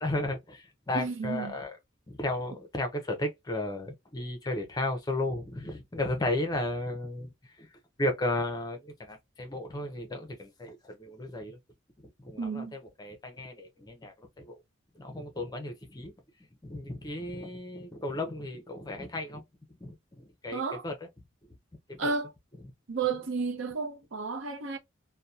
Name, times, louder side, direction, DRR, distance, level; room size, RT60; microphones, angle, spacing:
voice 1, 0.0-1.7 2.1-7.3 8.0-11.6 12.2-14.1 14.5-14.6 15.0-16.1 16.6-19.4 19.8-19.9 20.4-20.9 21.9-22.1, left 1 dB, 20° left, 0.5 m, -34 dB
voice 2, 0.9-1.6 12.4-12.7 20.5-20.9 22.0-22.3 22.9-24.8, right 4 dB, 75° right, 0.6 m, -32 dB
2.7 x 2.1 x 2.3 m
head